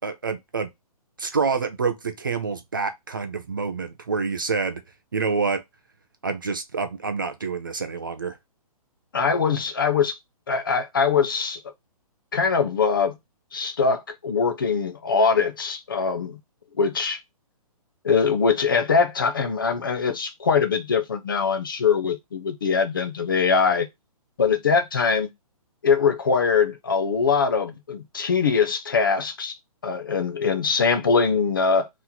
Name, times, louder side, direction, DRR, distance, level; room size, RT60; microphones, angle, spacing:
voice 1, 0.0-0.7 1.2-4.8 5.1-5.6 6.2-8.4, right 5 dB, 35° right, 0.4 m, -27 dB
voice 2, 9.1-10.2 10.5-11.6 12.3-13.2 13.5-16.4 16.8-17.2 18.0-23.9 24.4-25.3 25.8-29.6 29.8-31.9, left 5 dB, 35° left, 0.5 m, -22 dB
3.0 x 2.8 x 3.7 m
hypercardioid pair, 175°, 20 cm